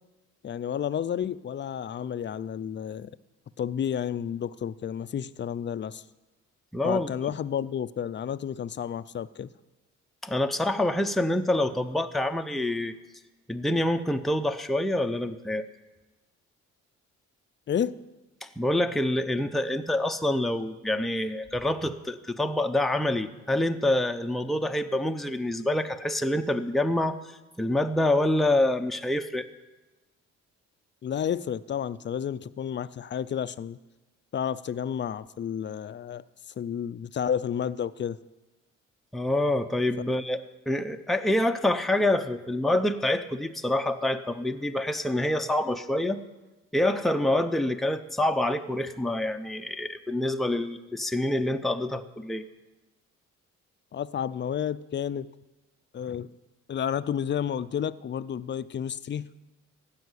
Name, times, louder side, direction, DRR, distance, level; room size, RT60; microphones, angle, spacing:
voice 1, 0.4-3.1 3.6-6.0 6.8-9.5 17.7-18.0 31.0-33.8 34.3-36.2 36.6-38.2 53.9-55.3 55.9-56.3 56.7-59.3, left 8 dB, 40° left, 15 dB, 0.5 m, -31 dB
voice 2, 6.7-7.1 10.2-12.9 13.5-15.6 18.4-27.2 27.6-29.5 39.1-40.4 40.7-46.2 46.7-52.4, left 1 dB, ahead, 6 dB, 0.7 m, -26 dB
15.5 x 5.7 x 9.6 m, 1.1 s
cardioid pair, 90°, 30 cm